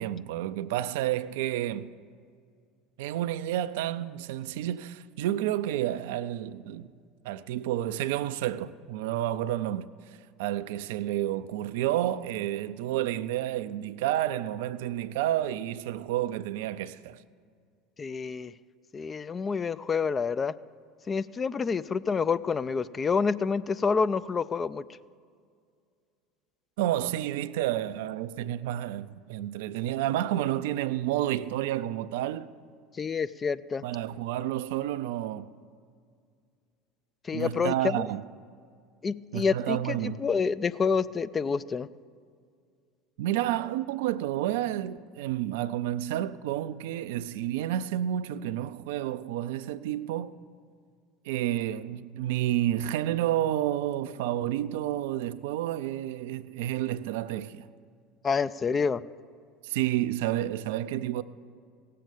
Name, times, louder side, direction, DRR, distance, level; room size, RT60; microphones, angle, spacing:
voice 1, 0.0-1.9 3.0-6.9 7.2-9.9 10.4-17.2 26.8-32.5 33.8-35.5 37.3-38.2 39.3-40.3 43.2-50.3 51.2-57.7 59.6-61.2, right 13 dB, 65° right, 0.4 m, -30 dB
voice 2, 18.0-18.5 18.9-20.5 21.1-24.8 33.0-33.8 37.2-38.1 39.0-41.9 58.2-59.0, left 5 dB, 25° left, 0.4 m, -28 dB
16.5 x 7.5 x 6.8 m
figure-of-eight pair, 70°, 0 cm